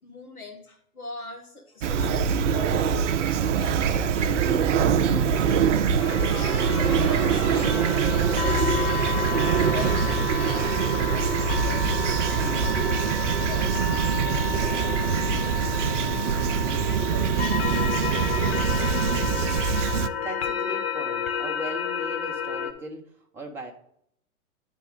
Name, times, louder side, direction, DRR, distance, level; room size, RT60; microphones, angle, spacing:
voice 1, 0.0-6.0 6.3-9.2 9.5-16.2 16.6-17.6, left 3 dB, 85° left, 1.3 m, -42 dB
Fowl / Chirp tweet, 1.8-20.1, right 7 dB, 60° right, 0.5 m, -24 dB
sound 1, 4.5-5.3 6.3-9.6, left 3 dB, 15° left, 1.5 m, -34 dB
sound 2, 6.0-22.7, left 5 dB, 45° left, 0.7 m, -31 dB
voice 2, 20.2-23.7, right 1 dB, 5° right, 0.5 m, -38 dB
9.9 x 3.7 x 3.6 m
figure-of-eight pair, 110°, 43 cm